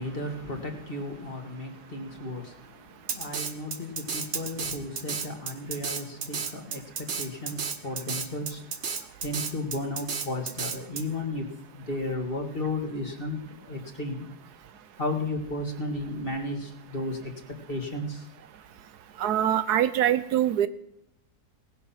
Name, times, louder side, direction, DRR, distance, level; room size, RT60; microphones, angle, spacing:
voice 1, 0.0-8.7 9.2-11.5 11.7-14.3 15.0-17.3 17.7-18.3, left 2 dB, 35° left, 3 dB, 2.1 m, -34 dB
Drum kit, 3.1-11.0, right 5 dB, 45° right, 1.1 m, -32 dB
voice 2, 19.2-20.7, right 11 dB, 75° right, 13 dB, 1.3 m, -23 dB
18.0 x 10.5 x 5.8 m, 0.83 s
omnidirectional pair, 1.7 m